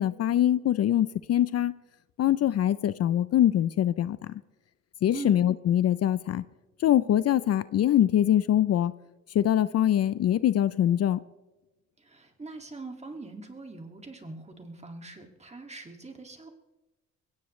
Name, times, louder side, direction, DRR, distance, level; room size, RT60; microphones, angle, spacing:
voice 1, 0.0-1.7 2.2-4.4 5.0-6.4 6.8-8.9 9.3-11.2, left 11 dB, 55° left, 16 dB, 0.5 m, -23 dB
voice 2, 12.0-16.5, right 3 dB, 20° right, 4 dB, 2.2 m, -42 dB
22.0 x 17.0 x 3.2 m, 1.1 s
cardioid pair, 90°, 30 cm